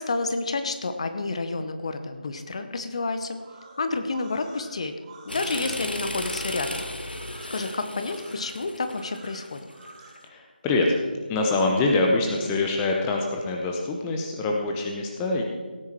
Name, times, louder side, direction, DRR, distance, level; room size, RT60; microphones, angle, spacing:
voice 1, 0.0-3.4 3.8-5.0 5.3-7.2 7.5-9.7, left 3 dB, 35° left, 8 dB, 0.9 m, -30 dB
sound 1, 3.3-10.2, right 3 dB, 25° right, 2.0 m, -48 dB
sound 2, 5.3-10.2, left 1 dB, 70° left, 1.3 m, -35 dB
voice 2, 10.3-10.9 11.3-15.4, left 2 dB, 10° left, 1 dB, 0.8 m, -24 dB
17.5 x 9.5 x 4.4 m, 1.4 s
figure-of-eight pair, 155°, 5 cm